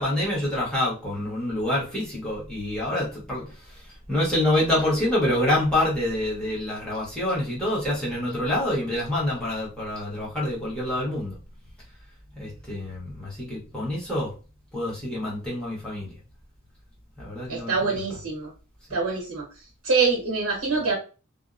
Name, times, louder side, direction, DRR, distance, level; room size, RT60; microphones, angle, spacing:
voice 1, 0.0-11.4 12.3-14.3 14.7-16.1 17.2-18.2, left 1 dB, 5° left, -6 dB, 1.1 m, -27 dB
voice 2, 17.5-18.5 18.9-19.5 19.8-20.9, right 4 dB, 85° right, -1 dB, 0.9 m, -25 dB
2.6 x 2.0 x 2.4 m, 0.34 s
head